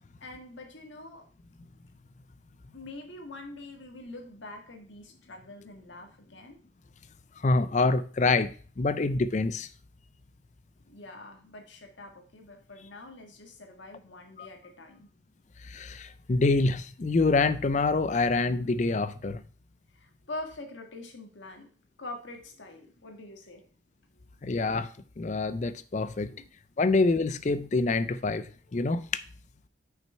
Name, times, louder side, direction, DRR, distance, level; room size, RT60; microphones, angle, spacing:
voice 1, 0.2-1.2 2.7-6.6 10.9-15.1 19.9-21.7 22.0-23.6 26.3-26.5, left 2 dB, 75° left, 1.7 m, -44 dB
voice 2, 7.4-9.7 14.4-14.5 15.6-19.4 24.4-24.9 25.2-26.3 26.8-29.2, left 3 dB, 40° left, 0.4 m, -26 dB
6.1 x 5.9 x 4.4 m
head